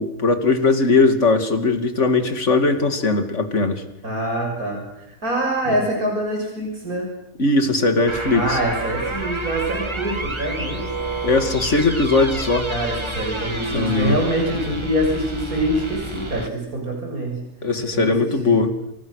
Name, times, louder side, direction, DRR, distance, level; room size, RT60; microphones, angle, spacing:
voice 1, 0.0-3.8 5.7-5.8 7.4-8.6 11.2-12.7 13.7-14.2 17.6-18.7, left 3 dB, 55° left, 7 dB, 2.8 m, -19 dB
voice 2, 4.0-7.1 8.3-10.9 12.7-17.4 17.9-18.6, right 1 dB, 85° right, 0 dB, 7.4 m, -25 dB
sound 1, 8.1-16.5, right 2 dB, 20° right, 2.2 m, -29 dB
29.5 x 29.0 x 6.6 m, 0.87 s
omnidirectional pair, 1.5 m